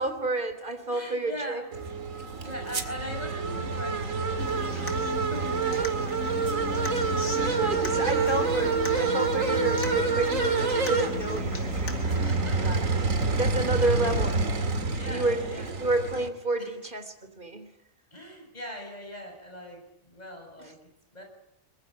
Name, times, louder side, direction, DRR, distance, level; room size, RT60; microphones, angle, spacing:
voice 1, 0.0-1.6 5.7-5.9 7.6-12.9 13.3-14.4 15.1-17.7, right 2 dB, 35° right, 8 dB, 3.5 m, -30 dB
voice 2, 0.9-1.7 2.4-5.0 5.3-5.6 6.7-7.6 8.1-8.4 9.5-9.7 12.0-12.8 13.7-14.1 14.9-15.9 16.6-16.7 18.1-21.2, equal, 30° left, 3 dB, 7.4 m, -42 dB
sound 1, 1.7-16.3, right 4 dB, 75° right, 2.6 m, -27 dB
Human voice / Acoustic guitar, 4.4-12.4, left 5 dB, 85° left, 3.0 m, -37 dB
23.0 x 21.5 x 10.0 m, 0.81 s
omnidirectional pair, 1.4 m